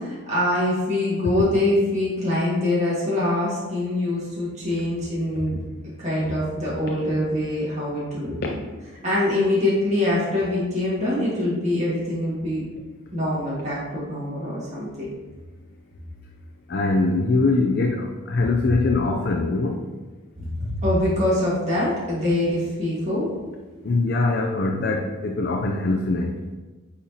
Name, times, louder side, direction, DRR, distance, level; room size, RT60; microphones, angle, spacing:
voice 1, 0.0-5.6 6.0-8.6 9.0-12.6 13.1-15.1 20.4-23.3, left 1 dB, 30° right, -8 dB, 1.8 m, -24 dB
voice 2, 16.7-19.8 23.8-26.3, left 3 dB, 50° left, 1 dB, 0.5 m, -22 dB
8.5 x 4.4 x 2.9 m, 1.3 s
head